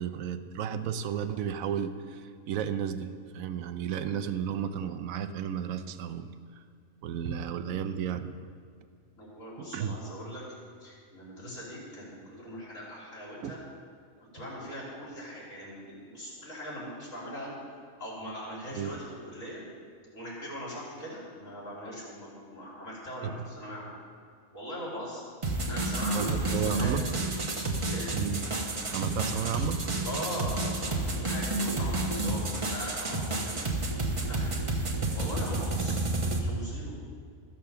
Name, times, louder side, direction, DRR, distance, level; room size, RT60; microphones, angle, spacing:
voice 1, 0.0-6.6 7.0-8.3 9.6-10.0 13.4-13.5 18.7-18.9 23.2-23.5 26.1-27.2 28.1-28.5 28.9-29.9 34.9-35.2 35.8-36.2, right 8 dB, 85° right, 10 dB, 1.0 m, -33 dB
voice 2, 9.1-10.4 10.8-13.6 14.2-17.5 18.0-19.0 19.2-19.6 20.1-23.9 24.5-25.2 25.7-27.0 27.9-28.1 30.0-33.5 33.9-34.5 35.1-36.9, equal, 70° left, -6 dB, 3.5 m, -40 dB
sound 1, 25.4-36.4, right 2 dB, 25° right, 1.0 m, -30 dB
13.5 x 5.6 x 6.7 m, 2.1 s
omnidirectional pair, 1.4 m